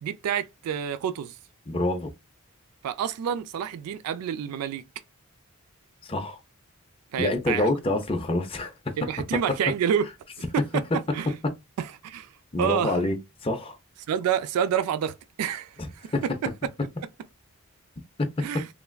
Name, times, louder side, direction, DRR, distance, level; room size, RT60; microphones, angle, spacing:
voice 1, 0.0-1.4 2.8-4.8 7.1-7.7 9.0-10.1 10.5-10.8 11.1-11.3 11.8-12.3 12.6-13.0 14.1-16.3 18.4-18.7, right 8 dB, 90° right, 0.3 m, -28 dB
voice 2, 1.7-2.1 6.0-6.4 7.2-8.7 12.5-13.2 13.4-13.8 16.1-16.2 18.2-18.3, left 2 dB, 25° left, 0.5 m, -26 dB
3.2 x 2.3 x 2.2 m
head